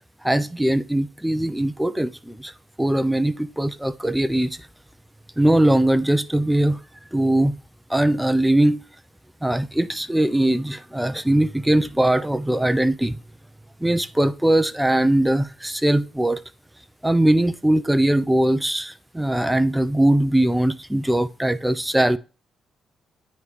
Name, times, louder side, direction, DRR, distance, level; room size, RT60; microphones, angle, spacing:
voice 1, 0.2-2.5 2.8-4.5 5.4-6.8 7.1-7.6 7.9-8.8 9.4-13.2 13.8-16.4 17.0-22.2, right 1 dB, 5° right, 0.6 m, -20 dB
9.2 x 3.3 x 4.8 m
cardioid pair, 90°, 0 cm